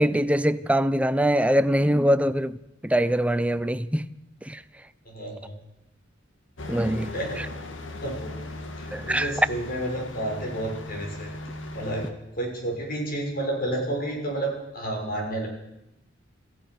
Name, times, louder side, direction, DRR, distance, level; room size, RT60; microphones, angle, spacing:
voice 1, 0.0-2.6 2.8-4.0 4.5-4.6 6.7-7.1 8.9-9.3, equal, 5° right, 0.7 m, -23 dB
voice 2, 5.0-5.5 7.1-7.4 8.0-8.4 8.8-11.3 11.7-12.1 12.3-15.5, right 1 dB, 50° left, 6.5 m, -30 dB
sound 1, 6.6-12.1, left 2 dB, 80° left, 2.1 m, -38 dB
26.5 x 16.0 x 6.9 m
head